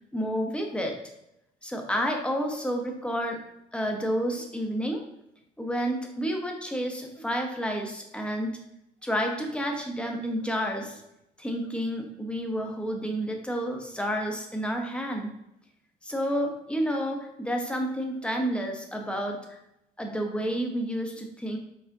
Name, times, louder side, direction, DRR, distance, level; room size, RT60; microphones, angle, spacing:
voice 1, 0.1-0.9 1.6-3.4 3.7-5.0 5.6-8.6 9.0-11.0 11.4-15.3 16.0-19.6 20.0-21.6, equal, 5° left, 2 dB, 0.7 m, -30 dB
4.8 x 3.4 x 2.6 m, 0.83 s
cardioid pair, 110°, 17 cm